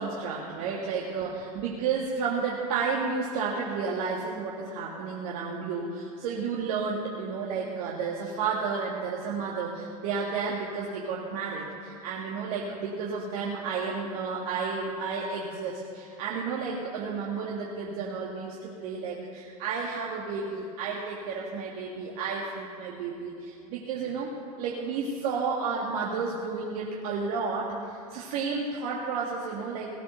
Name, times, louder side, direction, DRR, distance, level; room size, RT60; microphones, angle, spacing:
voice 1, 0.0-29.9, right 5 dB, 60° right, -4 dB, 2.1 m, -32 dB
18.0 x 9.1 x 6.6 m, 2.5 s
hypercardioid pair, 95°, 20 cm